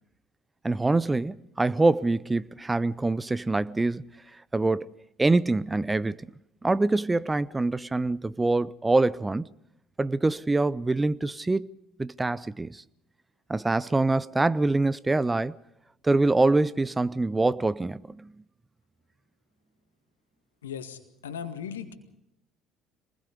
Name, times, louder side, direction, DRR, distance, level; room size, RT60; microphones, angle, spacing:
voice 1, 0.6-4.0 4.5-4.8 5.2-6.2 6.6-9.4 10.0-11.7 12.0-12.8 13.5-15.5 16.0-18.2, right 2 dB, 15° right, 0.7 m, -25 dB
voice 2, 20.6-21.9, left 8 dB, 80° left, 1.9 m, -37 dB
26.5 x 20.5 x 5.2 m
figure-of-eight pair, 60°, 0 cm